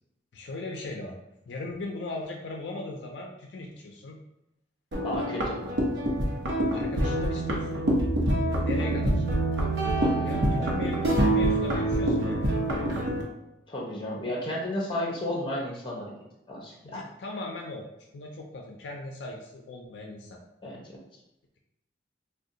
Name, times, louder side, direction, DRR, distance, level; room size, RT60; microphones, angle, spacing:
voice 1, 0.3-1.2 1.5-4.2 6.7-7.8 8.6-9.3 10.2-12.6 16.8-17.8 18.1-20.4, left 2 dB, 70° left, 1 dB, 0.4 m, -38 dB
sound 1, 4.9-13.2, right 1 dB, 70° right, 0.7 m, -26 dB
voice 2, 5.0-5.6 8.3-8.6 10.0-10.3 10.6-10.7 13.7-16.1 16.5-17.0 20.6-21.0, left 1 dB, 25° left, -2 dB, 0.7 m, -33 dB
2.6 x 2.2 x 3.7 m, 0.88 s
head